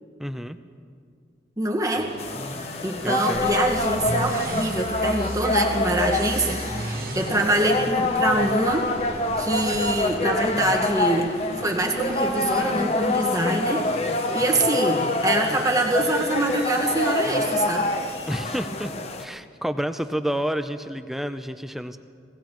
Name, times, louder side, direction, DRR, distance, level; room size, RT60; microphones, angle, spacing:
voice 1, 0.2-0.6 3.0-3.5 18.3-18.9 19.2-22.0, equal, ahead, 9 dB, 0.5 m, -29 dB
voice 2, 1.6-2.1 2.8-8.9 9.4-11.3 11.6-13.9 14.3-17.9, right 1 dB, 20° right, 0 dB, 1.5 m, -24 dB
sound 1, 1.9-18.3, left 1 dB, 65° left, 2.4 m, -39 dB
sound 2, 2.2-19.2, left 2 dB, 35° left, 0.8 m, -26 dB
sound 3, 3.3-11.2, right 2 dB, 55° right, 1.1 m, -35 dB
26.5 x 17.5 x 3.1 m, 2.2 s
head